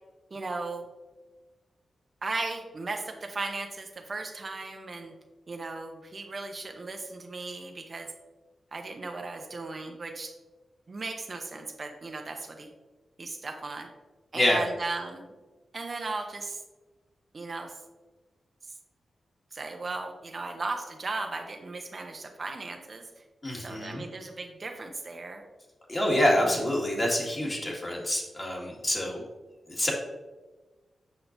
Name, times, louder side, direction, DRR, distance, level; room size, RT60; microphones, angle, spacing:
voice 1, 0.3-0.8 2.2-5.1 5.5-8.1 8.7-10.3 10.9-12.7 13.2-13.9 14.3-15.3 15.7-16.6 17.3-17.7 19.5-23.1 23.6-25.4, right 3 dB, 45° right, 4 dB, 0.7 m, -36 dB
voice 2, 23.4-24.0 25.9-29.2 29.7-29.9, left 1 dB, 35° left, -2 dB, 1.9 m, -26 dB
7.9 x 5.6 x 2.6 m, 1.2 s
cardioid pair, 75°, 0 cm